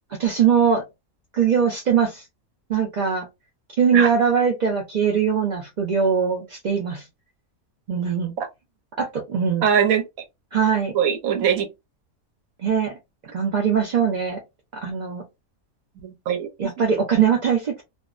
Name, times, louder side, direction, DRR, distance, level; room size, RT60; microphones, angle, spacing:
voice 1, 0.2-0.8 1.3-2.2 2.7-3.3 3.8-7.0 7.9-8.3 9.0-9.6 10.5-10.9 12.6-12.9 13.3-14.4 14.8-15.2 16.6-17.8, right 7 dB, 55° right, 0.5 m, -21 dB
voice 2, 9.6-10.0 10.9-11.7 16.0-16.9, right 8 dB, 75° right, 1.1 m, -22 dB
2.6 x 2.1 x 2.3 m
omnidirectional pair, 1.5 m